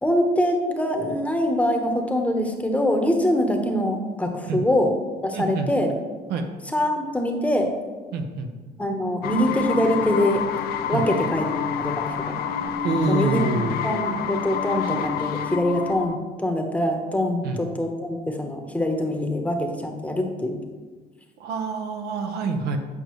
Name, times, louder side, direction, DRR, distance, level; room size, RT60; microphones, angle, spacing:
voice 1, 0.0-4.9 5.2-5.9 6.7-7.7 8.8-10.6 10.9-12.3 13.1-13.4 13.8-20.6, left 1 dB, 10° left, 3 dB, 0.9 m, -24 dB
voice 2, 5.3-5.7 6.3-6.5 8.1-8.5 10.9-11.0 12.8-13.8 17.4-17.6 21.4-22.8, right 4 dB, 75° right, 5 dB, 0.8 m, -26 dB
sound 1, 9.2-16.2, left 8 dB, 65° left, 0.5 m, -28 dB
8.6 x 5.2 x 3.1 m, 1.3 s
cardioid pair, 110°, 17 cm